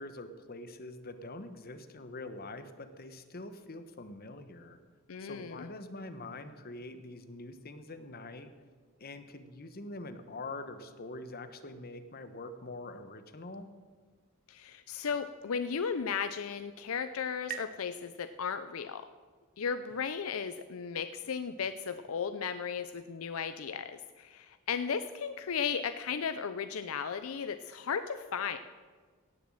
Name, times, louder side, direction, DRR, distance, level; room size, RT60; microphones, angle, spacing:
voice 1, 0.0-4.8 5.2-8.5 9.0-13.7, left 2 dB, 45° left, 9 dB, 1.0 m, -44 dB
voice 2, 5.1-5.7 14.5-19.1 19.6-28.6, left 6 dB, 70° left, 10 dB, 0.5 m, -35 dB
sound 1, 16.0-19.4, right 9 dB, 40° right, 0.9 m, -49 dB
17.0 x 7.2 x 7.7 m, 1.5 s
head